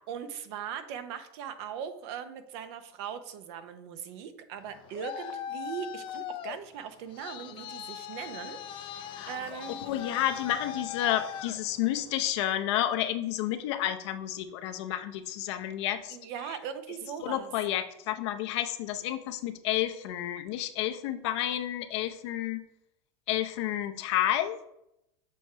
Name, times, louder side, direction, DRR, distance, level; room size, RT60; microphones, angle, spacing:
voice 1, 0.1-9.8 16.1-17.5, right 8 dB, 65° right, 10 dB, 0.8 m, -40 dB
Traffic noise roadway noise, 4.6-12.3, left 9 dB, 35° left, 0.4 m, -40 dB
voice 2, 9.8-16.2 17.2-22.6 23.3-24.6, left 12 dB, 70° left, 8 dB, 0.7 m, -30 dB
7.0 x 3.1 x 4.6 m, 0.81 s
supercardioid pair, 140°, 15 cm